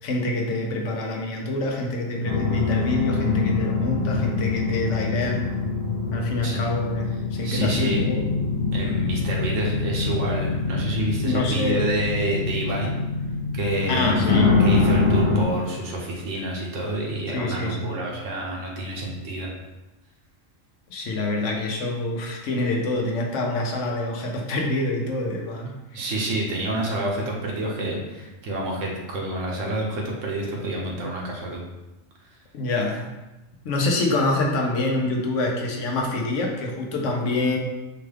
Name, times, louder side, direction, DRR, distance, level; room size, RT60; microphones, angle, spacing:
voice 1, 0.0-5.4 6.1-8.2 11.2-11.8 13.9-14.6 17.3-17.9 20.9-26.0 32.5-33.1 33.6-37.6, left 2 dB, 70° left, 1 dB, 0.9 m, -26 dB
sound 1, 2.2-15.4, left 4 dB, 20° left, 0.7 m, -24 dB
voice 2, 7.4-8.0 8.7-12.9 13.5-14.2 14.6-19.5 25.9-31.6, right 1 dB, 75° right, -1 dB, 1.1 m, -28 dB
4.6 x 2.3 x 3.2 m, 1.1 s
omnidirectional pair, 1.4 m